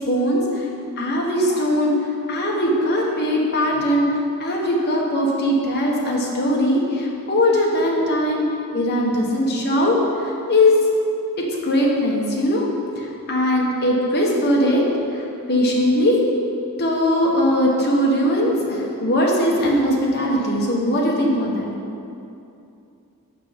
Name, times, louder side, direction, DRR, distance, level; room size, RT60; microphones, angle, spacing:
voice 1, 0.1-0.7 1.0-1.9 2.3-4.0 4.4-8.4 8.7-10.0 10.2-10.8 11.6-12.7 13.0-14.8 15.5-16.2 16.8-21.6, left 1 dB, 50° left, -2 dB, 1.3 m, -20 dB
6.6 x 6.0 x 5.1 m, 2.7 s
head